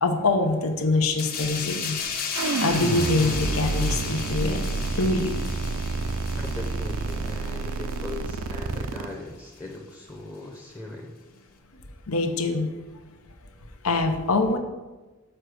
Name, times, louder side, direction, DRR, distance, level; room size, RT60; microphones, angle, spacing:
voice 1, 0.0-2.0 2.6-4.6 4.9-5.4 12.1-12.7 13.8-14.6, left 3 dB, 85° left, 6 dB, 0.8 m, -24 dB
sound 1, 1.2-8.4 8.7-8.9, left 6 dB, 45° left, 0.8 m, -35 dB
sound 2, 2.3-9.1, right 3 dB, 75° right, 0.5 m, -29 dB
voice 2, 6.4-11.2, left 2 dB, 15° left, 1 dB, 0.7 m, -39 dB
6.5 x 4.5 x 6.3 m, 1.2 s
head